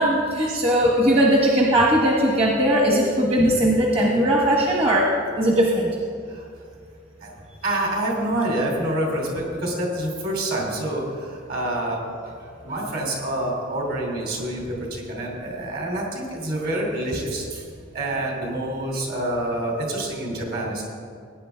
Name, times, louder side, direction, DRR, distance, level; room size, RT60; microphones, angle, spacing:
voice 1, 0.0-5.9, right 1 dB, 30° right, -1 dB, 1.2 m, -19 dB
voice 2, 7.6-17.6 17.9-20.8, right 1 dB, 50° right, -1 dB, 2.9 m, -27 dB
18.0 x 9.5 x 3.4 m, 2.2 s
head